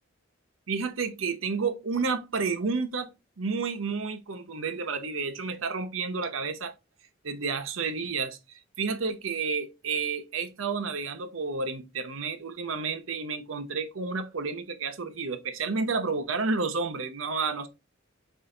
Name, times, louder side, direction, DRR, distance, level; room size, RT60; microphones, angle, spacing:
voice 1, 0.7-6.7 7.2-17.7, right 4 dB, 85° right, 0.8 m, -31 dB
5.5 x 2.5 x 3.7 m
head